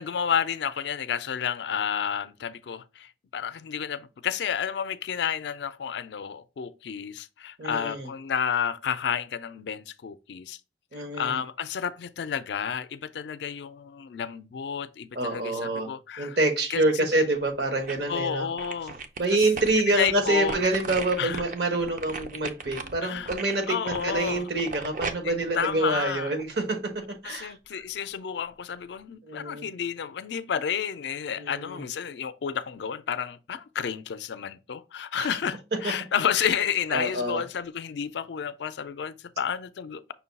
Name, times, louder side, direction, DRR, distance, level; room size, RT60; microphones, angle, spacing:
voice 1, 0.0-10.6 10.9-16.4 16.7-17.2 18.1-19.0 19.3-19.5 19.8-20.6 21.2-21.4 23.0-23.3 23.7-24.5 25.2-26.3 27.2-40.1, left 8 dB, 70° left, 0.4 m, -31 dB
voice 2, 7.6-8.1 10.9-11.4 15.1-15.9 16.2-18.5 19.2-27.5 29.2-29.6 31.4-31.8 35.2-35.3 36.9-37.4, right 2 dB, 65° right, 1.1 m, -27 dB
sound 1, 17.3-18.2 18.6-26.6 27.1-27.2, right 4 dB, 45° right, 0.5 m, -38 dB
5.7 x 2.2 x 4.0 m
head